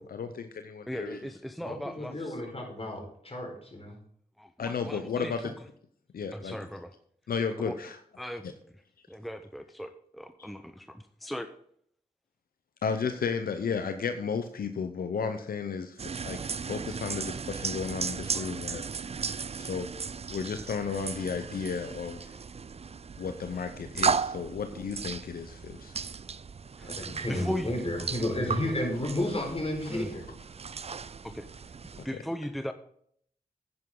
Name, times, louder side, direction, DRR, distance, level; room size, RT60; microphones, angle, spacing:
voice 1, 0.0-1.2 4.6-5.5 6.1-6.6 7.3-8.0 12.8-16.4 16.7-18.8 19.6-19.9 20.3-22.4 23.2-25.9 32.0-32.1, left 6 dB, 85° left, 8 dB, 0.7 m, -33 dB
voice 2, 0.9-2.4 4.4-5.5 6.3-6.9 7.5-7.7 8.2-8.5 9.1-11.5 26.8-26.9 27.2-27.7 29.9-30.1 31.2-31.5 32.0-32.7, equal, ahead, 9 dB, 0.7 m, -37 dB
voice 3, 1.6-4.0 6.5-6.6 18.3-18.4 26.8-30.2, left 1 dB, 40° left, 1 dB, 4.4 m, -32 dB
sound 1, 16.0-32.1, right 5 dB, 45° right, 0.4 m, -36 dB
9.8 x 9.7 x 3.8 m, 0.65 s
cardioid pair, 40°, 15 cm